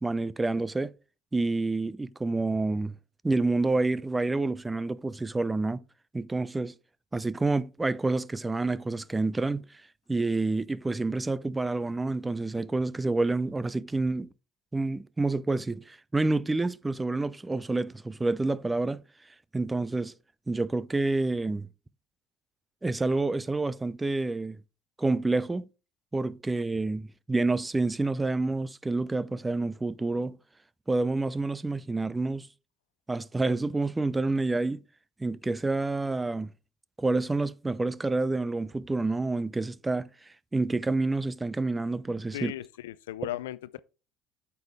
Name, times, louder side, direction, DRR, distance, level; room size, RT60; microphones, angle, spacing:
voice 1, 0.0-0.9 1.3-3.0 3.2-5.8 6.1-6.7 7.1-9.6 10.1-14.3 14.7-19.0 19.5-20.1 20.5-21.7 22.8-24.6 25.0-25.7 26.1-30.4 30.9-32.5 33.1-34.8 35.2-36.5 37.0-40.1 40.5-42.5, right 3 dB, 15° right, 0.5 m, -28 dB
voice 2, 42.3-43.8, left 14 dB, 80° left, 0.4 m, -36 dB
9.0 x 7.0 x 3.5 m
hypercardioid pair, 70°, 0 cm